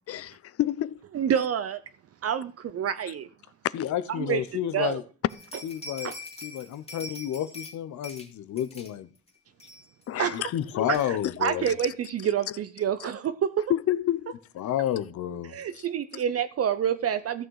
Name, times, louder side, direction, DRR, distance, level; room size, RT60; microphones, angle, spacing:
voice 1, 0.1-1.0 10.1-10.9 11.5-11.7 13.0-13.1 13.7-14.3, left 12 dB, 50° left, 0.5 m, -29 dB
voice 2, 1.1-1.8 2.2-3.3 4.2-4.4 4.7-5.0 6.0-6.1 10.2-10.4 10.9-13.7 15.5-17.5, right 8 dB, 50° right, 0.7 m, -28 dB
voice 3, 3.7-5.0 5.6-6.1 6.4-9.1 10.3-11.7 14.6-15.8, left 11 dB, 75° left, 0.9 m, -31 dB
sound 1, 5.3-7.7 8.0-8.3 8.6-8.9 9.3-9.4 9.6-10.0 10.3-10.4 10.9-11.0, left 2 dB, 20° left, 2.3 m, -43 dB
14.0 x 6.4 x 4.7 m
cardioid pair, 90°, 30 cm